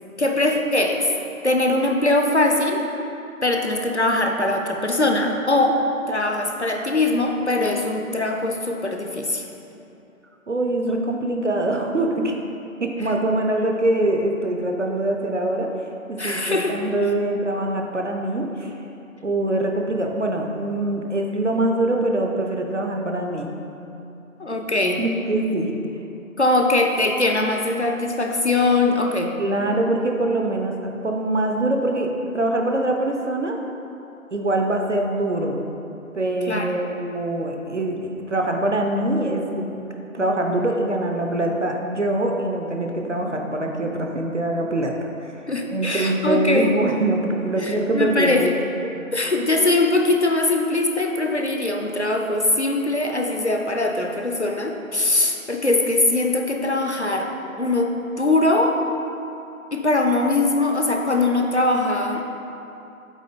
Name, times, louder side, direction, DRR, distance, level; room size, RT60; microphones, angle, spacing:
voice 1, 0.2-1.1 1.4-2.8 3.4-5.8 6.1-9.4 16.2-16.8 24.4-25.0 26.4-29.3 36.5-36.7 45.5-46.7 47.6-48.5 49.1-57.3 57.6-58.8 59.7-62.2, left 2 dB, 55° left, 3 dB, 0.5 m, -21 dB
voice 2, 10.5-12.4 12.8-15.7 16.1-18.7 19.2-23.5 25.0-25.7 29.4-32.1 32.3-33.6 34.3-35.6 36.1-39.9 40.1-45.3 45.7-48.5, right 1 dB, 55° right, 2 dB, 0.7 m, -23 dB
8.2 x 3.9 x 3.7 m, 2.8 s
figure-of-eight pair, 175°, 42 cm